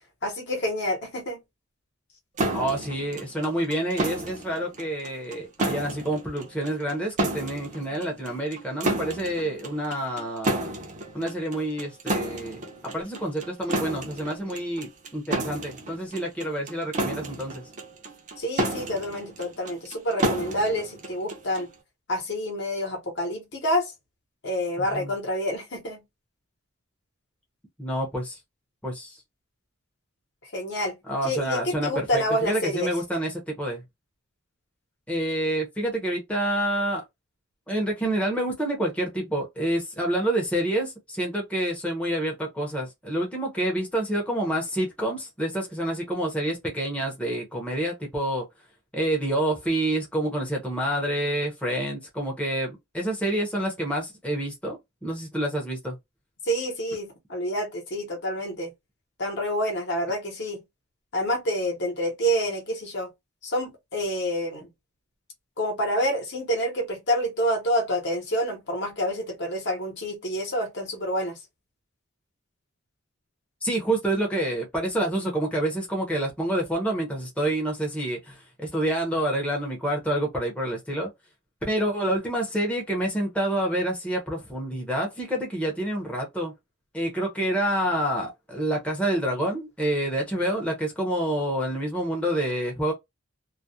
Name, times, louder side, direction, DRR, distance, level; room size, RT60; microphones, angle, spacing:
voice 1, 0.2-1.4 18.4-21.7 22.1-23.9 24.4-26.0 30.5-30.9 31.2-32.9 56.5-58.7 59.2-60.6 61.1-63.1 63.4-64.7 65.6-71.4, equal, 55° left, 0.9 m, -28 dB
sound 1, 2.4-21.7, right 1 dB, 35° right, 0.5 m, -32 dB
voice 2, 2.5-10.7 11.1-17.6 24.9-25.1 27.8-28.4 28.8-29.2 31.1-33.8 35.1-37.0 37.7-48.4 48.9-56.0 73.6-81.1 81.7-86.5 86.9-92.9, right 1 dB, 5° left, 0.6 m, -28 dB
2.3 x 2.1 x 2.6 m
head